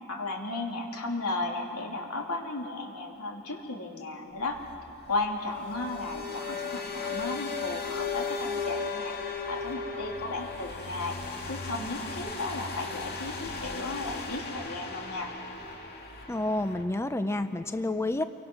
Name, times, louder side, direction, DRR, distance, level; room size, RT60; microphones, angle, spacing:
voice 1, 0.1-4.6 5.1-9.1 9.5-11.2 11.5-15.3, left 2 dB, 85° left, 1 dB, 3.0 m, -34 dB
sound 1, 4.4-16.8, left 4 dB, 45° left, 2.5 m, -36 dB
voice 2, 16.3-18.2, left 2 dB, 10° left, 9 dB, 0.5 m, -29 dB
28.5 x 23.5 x 6.2 m, 2.8 s
head